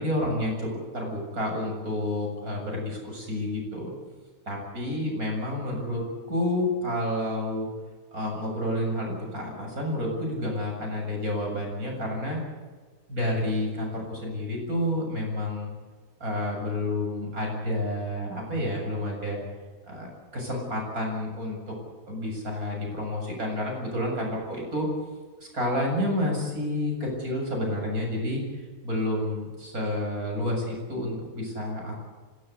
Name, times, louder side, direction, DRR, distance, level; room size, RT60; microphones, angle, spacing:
voice 1, 0.0-3.9 4.5-7.7 8.1-12.4 13.1-15.7 16.2-19.4 19.9-21.7 22.1-24.9 25.5-28.4 28.8-32.1, left 1 dB, 65° right, 0 dB, 7.9 m, -29 dB
26.0 x 17.0 x 8.2 m, 1.4 s
omnidirectional pair, 1.6 m